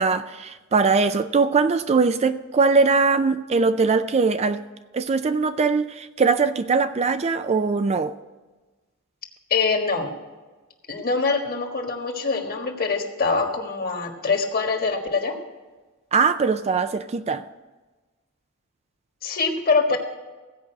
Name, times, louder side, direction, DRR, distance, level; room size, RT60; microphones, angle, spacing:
voice 1, 0.0-4.6 4.9-8.1 16.1-17.4, right 4 dB, 30° right, 0.4 m, -21 dB
voice 2, 9.5-10.1 10.9-15.3 19.2-20.0, left 4 dB, 45° left, 1.5 m, -24 dB
16.0 x 5.3 x 8.1 m
head